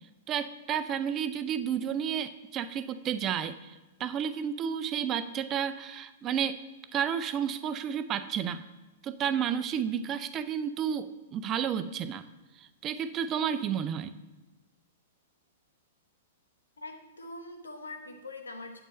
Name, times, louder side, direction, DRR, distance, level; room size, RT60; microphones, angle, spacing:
voice 1, 0.3-3.7 4.0-6.6 6.9-8.6 9.0-12.2 12.8-14.1, right 8 dB, 25° right, 12 dB, 0.5 m, -31 dB
voice 2, 16.8-18.8, left 2 dB, 75° left, 5 dB, 1.1 m, -43 dB
8.4 x 7.7 x 4.2 m, 1.1 s
figure-of-eight pair, 105°, 0 cm